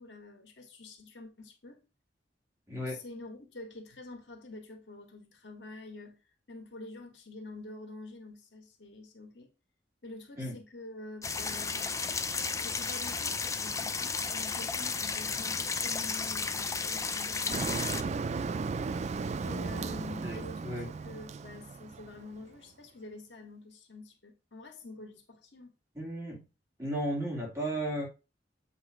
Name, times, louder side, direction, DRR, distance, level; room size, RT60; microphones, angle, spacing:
voice 1, 0.0-1.8 2.8-6.2 6.5-9.5 10.0-12.0 12.5-17.7 19.4-25.7, left 2 dB, 90° left, 1.7 m, -47 dB
voice 2, 2.7-3.0 10.4-10.5 20.2-20.9 25.9-26.4 26.8-28.1, right 1 dB, 15° right, 2.6 m, -34 dB
sound 1, 11.2-18.0, left 4 dB, 20° left, 0.5 m, -33 dB
Motor vehicle (road), 17.5-22.4, right 4 dB, 40° right, 0.4 m, -35 dB
8.0 x 3.2 x 4.8 m
head